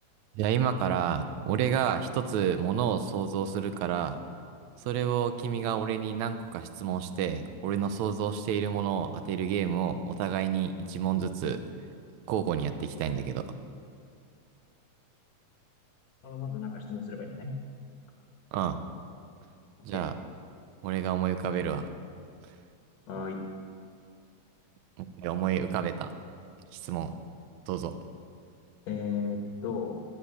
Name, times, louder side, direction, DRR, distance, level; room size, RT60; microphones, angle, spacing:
voice 1, 0.4-4.2 4.8-11.6 12.3-13.5 18.5-18.8 19.9-20.1 20.8-21.9 25.0-26.1 26.7-27.1 27.7-27.9, right 8 dB, 75° right, 9 dB, 2.0 m, -30 dB
voice 2, 16.2-17.6 19.9-20.0 23.1-23.4 28.9-30.0, left 5 dB, 65° left, 2 dB, 2.4 m, -35 dB
13.5 x 10.5 x 9.8 m, 2.4 s
omnidirectional pair, 3.5 m